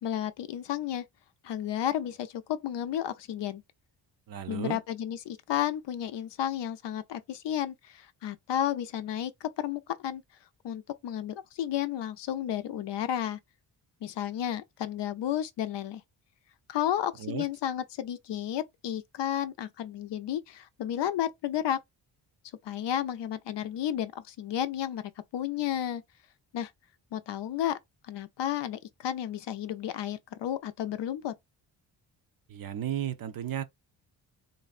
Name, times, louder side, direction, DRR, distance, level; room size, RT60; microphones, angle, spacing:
voice 1, 0.0-1.0 1.4-3.6 4.5-10.2 10.6-13.4 14.0-16.0 16.7-21.8 22.6-26.0 26.5-26.7 27.1-27.8 28.1-31.3, left 10 dB, 65° left, 0.5 m, -32 dB
voice 2, 4.3-4.8 17.2-17.5 32.5-33.6, right 10 dB, 50° right, 0.5 m, -34 dB
3.1 x 2.5 x 2.4 m
supercardioid pair, 55°, 47 cm